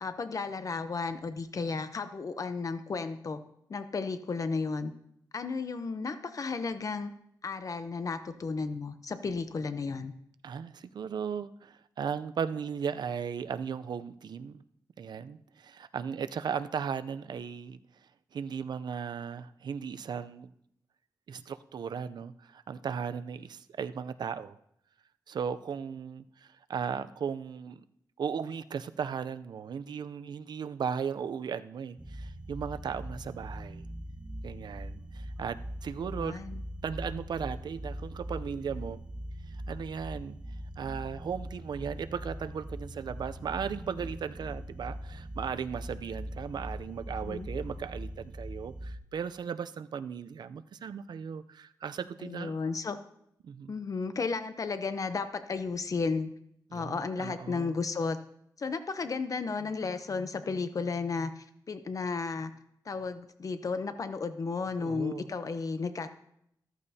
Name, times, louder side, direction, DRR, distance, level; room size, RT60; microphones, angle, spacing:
voice 1, 0.0-3.4 3.7-4.9 5.3-7.1 7.4-10.1 36.0-36.6 47.3-47.5 52.2-53.0 53.7-56.3 56.7-58.2 58.6-62.5 62.9-66.1, left 4 dB, 50° left, 10 dB, 0.7 m, -33 dB
voice 2, 10.4-14.6 15.0-17.8 18.3-20.5 21.3-24.6 25.3-27.8 28.2-33.8 34.4-36.4 36.8-39.0 39.5-40.4 40.8-52.6 53.4-53.7 56.7-57.7 64.8-65.3, right 7 dB, 80° right, 13 dB, 0.5 m, -36 dB
sound 1, 32.0-49.0, equal, 15° right, 0.9 m, -41 dB
14.0 x 14.0 x 2.8 m, 0.74 s
wide cardioid pair, 105°, 7 cm